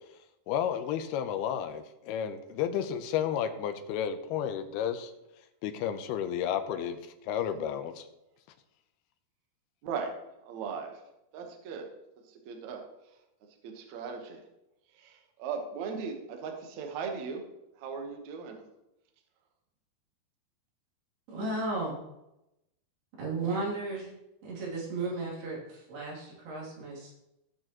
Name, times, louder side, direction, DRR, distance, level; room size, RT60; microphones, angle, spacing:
voice 1, 0.5-5.1 5.6-7.0 7.2-8.1, left 9 dB, 85° left, 8 dB, 2.7 m, -32 dB
voice 2, 9.8-10.1 10.4-10.9 11.3-11.9 12.3-12.8 13.6-14.4 14.9-17.4 17.8-18.7, right 5 dB, 60° right, 3 dB, 2.2 m, -38 dB
voice 3, 21.3-22.0 23.2-24.1 24.4-27.2, right 3 dB, 80° right, -5 dB, 4.9 m, -34 dB
16.5 x 6.5 x 3.0 m, 0.89 s
omnidirectional pair, 4.5 m